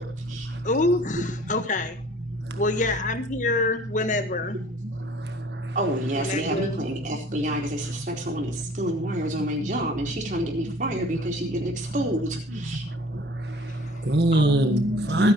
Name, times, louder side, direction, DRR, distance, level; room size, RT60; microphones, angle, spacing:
voice 1, 0.0-0.7 2.2-2.6 4.8-5.8 6.4-6.8 7.1-7.2 7.8-8.0 8.4-9.7 11.4-11.5 12.5-15.3, right 1 dB, 70° right, 1.6 m, -26 dB
voice 2, 0.6-2.0 2.6-4.6 6.1-6.9 14.3-15.3, left 2 dB, 45° left, 1.5 m, -27 dB
voice 3, 5.7-12.8, right 1 dB, 45° right, 4.2 m, -29 dB
25.5 x 9.9 x 3.1 m
head